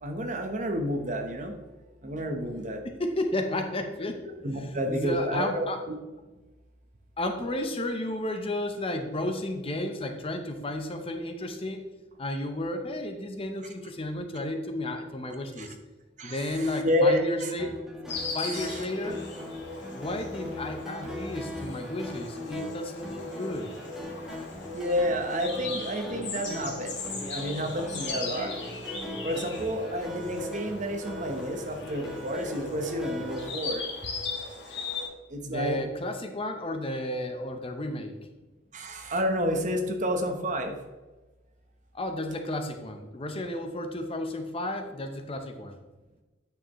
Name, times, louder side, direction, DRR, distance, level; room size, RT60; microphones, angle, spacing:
voice 1, 0.0-1.5 2.0-2.8 4.4-5.9 15.6-15.7 16.2-17.5 18.4-18.9 24.7-28.5 29.2-33.8 35.3-35.8 38.7-40.7, equal, 40° right, 5 dB, 1.0 m, -30 dB
voice 2, 2.8-4.2 4.6-5.8 7.2-11.8 12.2-15.8 16.2-17.9 18.3-19.2 19.9-23.7 35.4-38.1 41.9-45.8, left 1 dB, 30° left, 6 dB, 0.7 m, -32 dB
sound 1, 17.6-33.5, left 1 dB, ahead, 1.1 m, -40 dB
Insect, 18.1-35.1, left 3 dB, 65° left, 1.5 m, -38 dB
9.1 x 6.5 x 3.1 m, 1.2 s
head